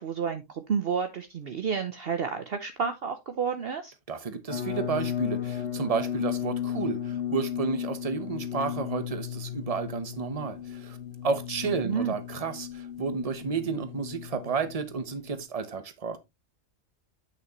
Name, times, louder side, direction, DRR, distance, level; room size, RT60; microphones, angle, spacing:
voice 1, 0.0-3.9 11.7-12.1, right 6 dB, 55° right, 0.9 m, -30 dB
voice 2, 4.1-11.0 11.2-16.2, right 5 dB, 30° right, 1.0 m, -31 dB
sound 1, 4.5-15.4, left 10 dB, 60° left, 1.0 m, -35 dB
8.9 x 6.1 x 3.0 m
omnidirectional pair, 1.3 m